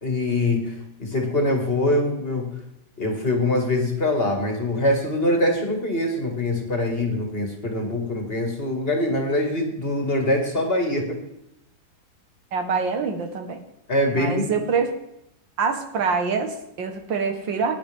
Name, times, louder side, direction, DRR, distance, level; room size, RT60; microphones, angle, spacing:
voice 1, 0.0-2.6 3.0-11.2 13.9-14.6, left 1 dB, 30° left, 2 dB, 2.2 m, -23 dB
voice 2, 12.5-13.6 14.1-14.9 15.6-17.8, right 5 dB, 80° right, 6 dB, 2.0 m, -25 dB
16.0 x 10.0 x 3.6 m, 0.82 s
omnidirectional pair, 2.0 m